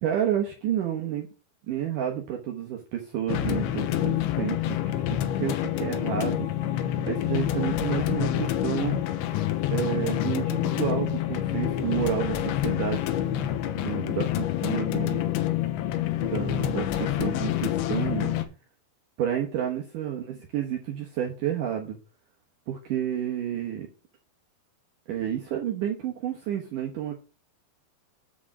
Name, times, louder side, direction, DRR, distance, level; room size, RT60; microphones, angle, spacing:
voice 1, 0.0-1.3 1.7-6.5 7.1-9.0 9.7-13.5 13.8-15.3 16.2-18.3 19.2-22.0 22.7-23.9 25.1-27.1, right 10 dB, 75° right, 2 dB, 1.9 m, -30 dB
sound 1, 3.3-18.4, left 12 dB, 90° left, 3.2 m, -27 dB
7.6 x 4.8 x 7.2 m, 0.33 s
omnidirectional pair, 5.2 m